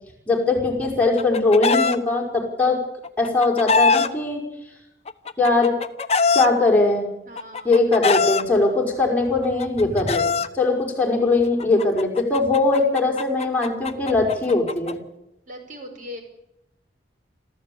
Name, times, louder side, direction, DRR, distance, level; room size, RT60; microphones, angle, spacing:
voice 1, 0.3-2.8 3.2-4.4 5.4-5.7 6.3-7.1 7.6-10.3 10.5-15.0, left 3 dB, 10° left, -2 dB, 5.4 m, -20 dB
Chicken rooster, 0.8-2.0 3.0-4.1 5.1-6.5 7.4-8.4 9.4-10.5 11.6-14.9, left 5 dB, 35° left, 1.0 m, -22 dB
voice 2, 7.3-7.7 15.5-16.2, left 1 dB, 45° right, 4 dB, 5.4 m, -38 dB
26.0 x 14.5 x 8.8 m, 0.87 s
head